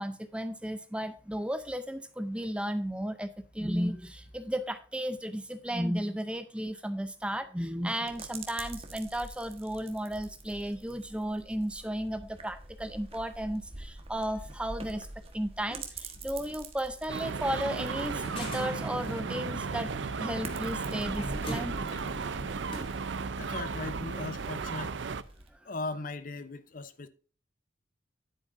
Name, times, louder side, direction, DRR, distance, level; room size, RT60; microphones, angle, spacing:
voice 1, 0.0-3.3 3.5-15.1 15.3-19.9 20.2-21.8, equal, 5° right, 0.5 m, -34 dB
sound 1, 8.1-25.5, right 2 dB, 30° right, 1.3 m, -46 dB
sound 2, 17.1-25.2, right 5 dB, 75° right, 0.6 m, -35 dB
sound 3, 18.2-23.5, right 1 dB, 30° left, 2.4 m, -42 dB
voice 2, 23.4-24.9 25.7-27.1, left 3 dB, 45° left, 0.7 m, -38 dB
10.0 x 8.9 x 2.6 m
head